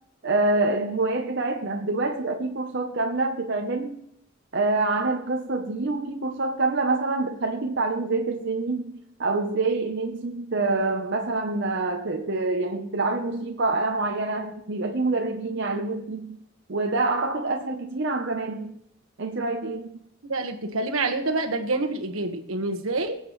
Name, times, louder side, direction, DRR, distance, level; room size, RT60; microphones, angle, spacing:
voice 1, 0.2-4.0 4.5-16.4 16.7-18.7 19.2-20.0, right 3 dB, 55° right, 3 dB, 0.8 m, -26 dB
voice 2, 20.2-23.2, right 2 dB, 80° right, 4 dB, 1.4 m, -27 dB
23.0 x 8.3 x 3.2 m, 0.75 s
head